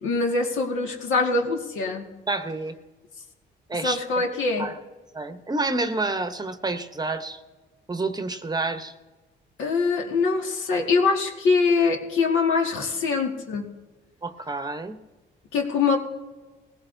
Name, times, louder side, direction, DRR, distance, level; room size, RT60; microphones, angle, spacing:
voice 1, 0.0-2.1 3.8-4.7 9.6-13.7 15.5-16.0, left 4 dB, 80° left, 1 dB, 2.0 m, -23 dB
voice 2, 2.3-2.8 3.7-4.2 4.6-4.8 5.1-7.4 7.9-8.9 14.2-15.0, right 3 dB, 20° right, 9 dB, 0.9 m, -29 dB
19.5 x 16.5 x 2.7 m, 1.2 s
cardioid pair, 90°, 20 cm